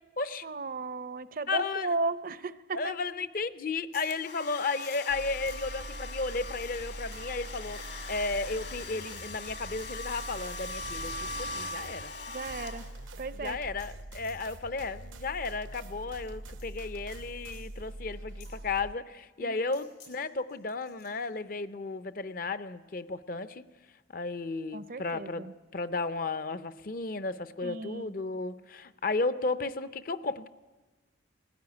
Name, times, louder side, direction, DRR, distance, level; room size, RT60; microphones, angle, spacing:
voice 1, 0.4-2.9 12.3-12.8 13.2-13.6 19.4-19.6 24.7-25.5 27.6-28.1, right 3 dB, 45° right, 14 dB, 0.6 m, -35 dB
voice 2, 1.5-1.9 2.7-7.8 8.1-12.1 13.4-23.6 24.1-25.5 25.7-30.5, left 3 dB, 45° left, 13 dB, 0.6 m, -34 dB
sound 1, 3.7-4.1 4.5-6.9 7.5-7.8 8.2-9.3 10.2-10.4 11.0-11.2 11.5-11.8 12.1-12.4 12.8-12.9 13.3-13.4 13.7-14.4 15.1-15.3 16.1-16.3 16.6-16.7 17.5-17.7 18.4-18.6 19.7-20.1 20.5-21.3, left 5 dB, 85° left, 7.3 m, -56 dB
Domestic sounds home sounds, 4.1-13.3, left 2 dB, 60° left, 1.6 m, -41 dB
sound 2, 5.1-18.9, right 1 dB, 85° right, 0.9 m, -44 dB
19.5 x 15.5 x 9.5 m, 1.2 s
head